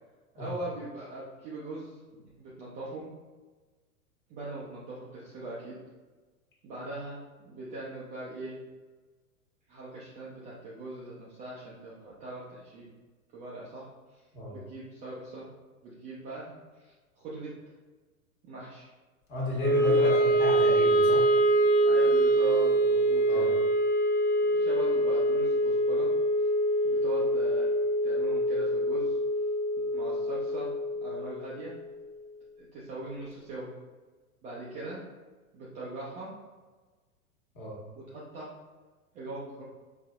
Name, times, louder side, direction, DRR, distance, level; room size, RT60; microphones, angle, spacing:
voice 1, 0.3-3.1 4.3-5.8 6.6-8.5 9.7-12.9 13.3-13.9 14.1-14.2 14.5-15.5 15.8-17.5 18.4-18.9 19.7-20.2 21.8-23.6 24.4-26.1 26.4-26.5 26.8-27.7 28.0-29.2 29.9-30.7 31.0-31.7 32.6-33.7 34.4-35.0 35.5-36.3 38.0-38.5 39.1-39.6, right 2 dB, 15° right, -7 dB, 0.5 m, -40 dB
voice 2, 19.3-21.3 23.3-23.5 37.5-37.8, left 1 dB, 25° left, -5 dB, 1.5 m, -33 dB
Wind instrument woodwind instrument, 19.6-31.8, right 1 dB, 55° left, 0.9 m, -25 dB
5.1 x 2.6 x 2.4 m, 1.3 s
figure-of-eight pair, 95°, 43 cm